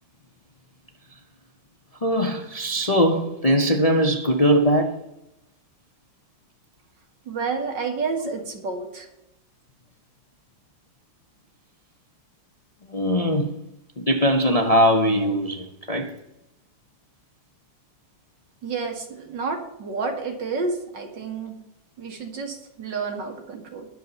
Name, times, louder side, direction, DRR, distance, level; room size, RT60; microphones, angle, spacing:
voice 1, 2.0-4.9 12.9-13.5 14.0-16.1, equal, 35° left, 0.6 m, -21 dB
voice 2, 7.3-9.1 18.6-21.6 22.0-23.9, right 4 dB, 70° right, 2.8 m, -30 dB
20.5 x 7.4 x 4.0 m
omnidirectional pair, 2.0 m